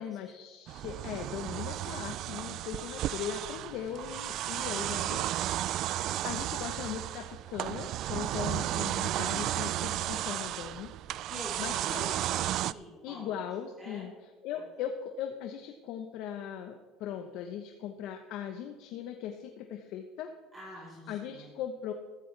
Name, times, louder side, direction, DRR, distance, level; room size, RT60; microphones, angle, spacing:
voice 1, 0.0-5.3 5.7-10.9 11.6-12.1 13.0-14.1 14.4-20.3 21.1-21.9, left 9 dB, 70° left, 5 dB, 0.9 m, -39 dB
sound 1, 0.7-12.7, right 13 dB, 60° right, 0.3 m, -33 dB
voice 2, 8.4-8.8 11.2-13.3 13.8-14.1 14.5-14.6 20.5-21.5, left 1 dB, 15° right, -5 dB, 4.2 m, -46 dB
14.0 x 14.0 x 3.3 m, 1.4 s
supercardioid pair, 105°, 0 cm